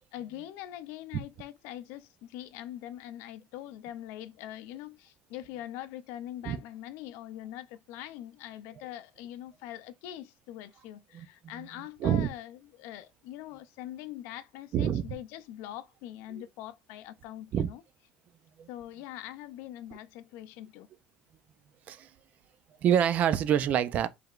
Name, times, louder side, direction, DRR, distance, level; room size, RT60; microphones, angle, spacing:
voice 1, 0.1-17.8 18.7-20.9, left 13 dB, 80° left, 0.4 m, -43 dB
voice 2, 11.1-11.7 12.0-12.3 14.7-15.2 17.5-17.7 18.6-18.7 21.9-22.1 22.8-24.1, right 9 dB, 40° right, 0.4 m, -27 dB
4.8 x 3.3 x 2.4 m
cardioid pair, 170°, 4 cm